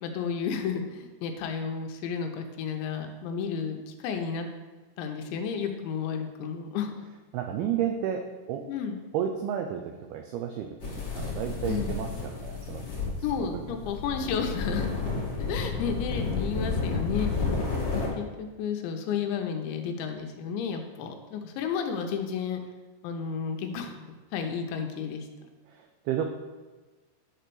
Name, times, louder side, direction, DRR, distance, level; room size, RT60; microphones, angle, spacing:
voice 1, 0.0-4.5 5.0-6.9 8.7-9.0 11.7-11.9 13.2-14.9 15.4-17.5 17.9-22.6 23.0-23.9 24.3-25.3, left 6 dB, 80° left, 5 dB, 3.2 m, -32 dB
voice 2, 7.3-8.7 9.1-13.6 25.7-26.2, right 9 dB, 85° right, 5 dB, 2.2 m, -32 dB
sound 1, 10.8-18.1, left 4 dB, 30° left, 3.0 m, -31 dB
10.5 x 4.5 x 6.8 m, 1.3 s
omnidirectional pair, 5.3 m